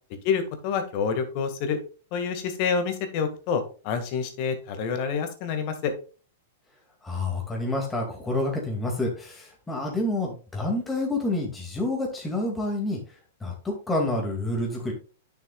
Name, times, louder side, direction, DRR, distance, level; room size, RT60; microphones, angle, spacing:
voice 1, 0.2-1.8 2.1-5.9, left 6 dB, 50° left, 8 dB, 1.9 m, -27 dB
voice 2, 7.0-13.2 13.4-14.9, left 2 dB, 10° left, -1 dB, 2.3 m, -28 dB
9.1 x 6.7 x 2.4 m, 0.36 s
hypercardioid pair, 120°, 0 cm